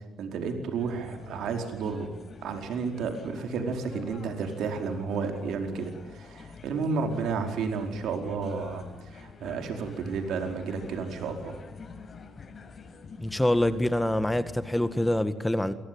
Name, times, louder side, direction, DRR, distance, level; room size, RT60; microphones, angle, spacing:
voice 1, 0.2-2.1 2.4-11.6, right 5 dB, 80° right, 5 dB, 4.8 m, -32 dB
sound 1, 0.8-15.2, left 4 dB, 45° left, 5.1 m, -47 dB
voice 2, 13.2-15.7, left 1 dB, 10° left, 12 dB, 1.9 m, -25 dB
28.0 x 21.5 x 9.7 m, 0.91 s
cardioid pair, 90°, 0 cm